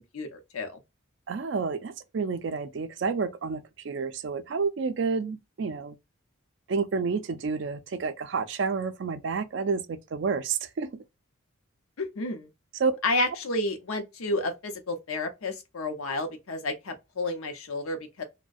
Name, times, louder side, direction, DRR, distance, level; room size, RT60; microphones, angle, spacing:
voice 1, 0.1-0.8 12.0-12.5 13.0-18.2, left 2 dB, 90° left, 0.6 m, -31 dB
voice 2, 1.3-6.0 6.7-10.9 12.8-12.9, right 5 dB, 60° right, 0.4 m, -29 dB
2.3 x 2.1 x 2.5 m
head